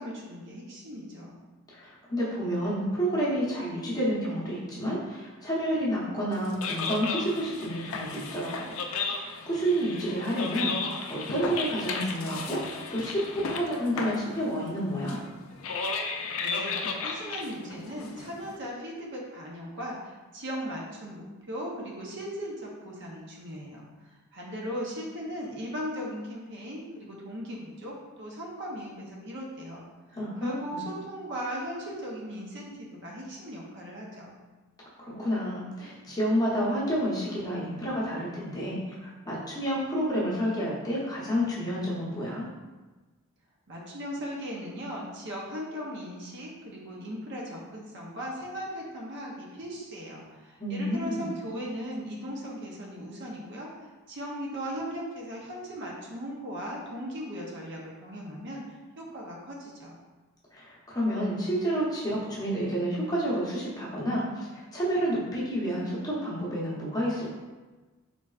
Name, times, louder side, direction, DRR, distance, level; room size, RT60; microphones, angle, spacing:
voice 1, 0.0-1.4 16.4-29.8 30.4-34.4 43.7-58.6 59.0-60.0, equal, 55° right, -3 dB, 0.7 m, -38 dB
voice 2, 1.7-8.5 9.1-15.2 30.1-30.8 35.0-42.4 50.6-51.3 60.5-67.3, equal, 20° left, -7 dB, 0.9 m, -30 dB
sound 1, 6.3-18.6, left 4 dB, 70° left, 0.4 m, -35 dB
3.9 x 3.3 x 2.4 m, 1.2 s
head